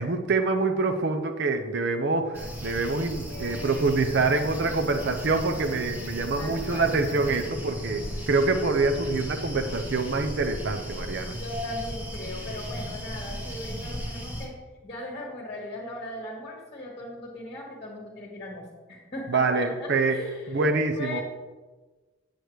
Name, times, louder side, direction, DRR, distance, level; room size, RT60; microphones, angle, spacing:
voice 1, 0.0-11.4 19.3-20.2 20.5-21.2, right 3 dB, 55° right, 6 dB, 0.6 m, -26 dB
sound 1, 2.3-14.5, equal, 10° right, 1.3 m, -36 dB
voice 2, 3.3-4.2 4.6-5.0 6.3-6.9 11.4-14.6 14.8-20.7 21.0-21.2, left 1 dB, 30° left, -4 dB, 1.5 m, -38 dB
8.4 x 8.1 x 3.1 m, 1.3 s
head